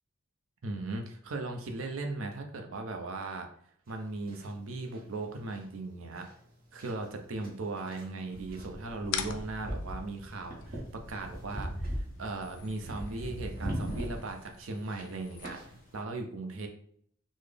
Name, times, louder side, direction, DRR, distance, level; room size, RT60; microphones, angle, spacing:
voice 1, 0.6-3.5 3.9-6.3 6.7-10.8 11.1-15.6 15.9-16.7, right 2 dB, 75° right, 4 dB, 0.6 m, -38 dB
sound 1, 3.9-16.0, equal, 45° right, 1.0 m, -40 dB
sound 2, 9.0-16.0, left 8 dB, 65° left, 0.3 m, -44 dB
3.8 x 2.0 x 3.3 m, 0.63 s
head